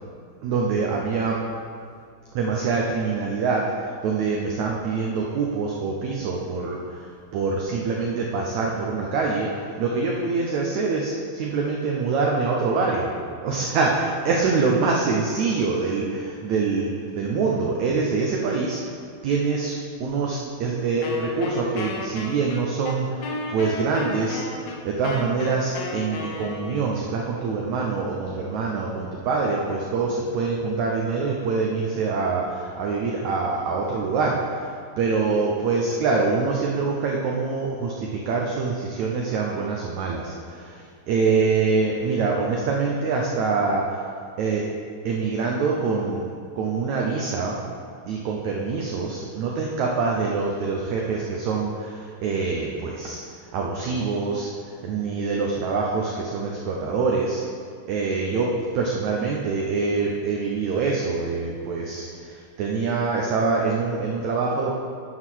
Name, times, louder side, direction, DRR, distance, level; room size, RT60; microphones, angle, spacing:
voice 1, 0.4-1.4 2.3-13.1 13.4-18.8 19.2-44.0 44.4-44.7 45.0-46.2 46.6-47.6 48.1-53.2 53.5-57.4 57.9-64.7, right 4 dB, 85° right, -1 dB, 1.6 m, -25 dB
Wind instrument woodwind instrument, 21.0-27.0, left 3 dB, 75° left, 2.5 m, -34 dB
9.4 x 5.8 x 6.3 m, 2.2 s
omnidirectional pair, 4.4 m